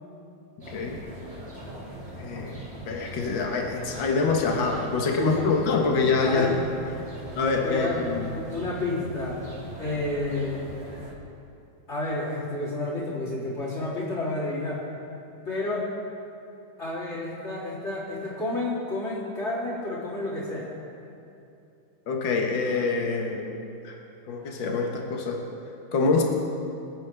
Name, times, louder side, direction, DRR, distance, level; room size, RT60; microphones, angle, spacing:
sound 1, 0.6-11.1, right 1 dB, 30° right, 3.0 m, -41 dB
voice 1, 0.7-1.0 2.2-6.5 7.3-8.3 22.1-23.5 23.8-24.0 24.3-25.4 25.9-26.2, left 4 dB, 70° left, 1 dB, 2.0 m, -25 dB
voice 2, 5.2-5.5 6.2-6.6 7.1-7.2 7.6-8.0 8.3-9.4 9.8-10.6 11.9-14.8 15.4-15.9 16.8-20.7, left 2 dB, 35° left, -8 dB, 3.8 m, -30 dB
26.0 x 9.3 x 3.5 m, 2.7 s
omnidirectional pair, 2.1 m